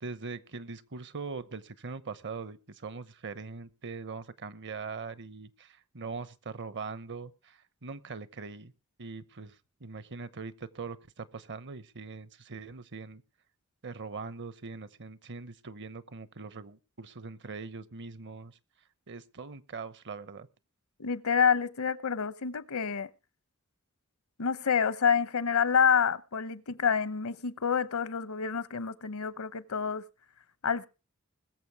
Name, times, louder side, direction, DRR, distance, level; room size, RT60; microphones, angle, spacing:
voice 1, 0.0-8.7 9.0-9.5 9.8-13.2 13.8-18.6 19.1-20.5, right 4 dB, 55° right, 0.9 m, -41 dB
voice 2, 21.0-23.1 24.4-30.1 30.6-30.9, left 6 dB, 75° left, 0.8 m, -28 dB
21.5 x 7.2 x 4.7 m
head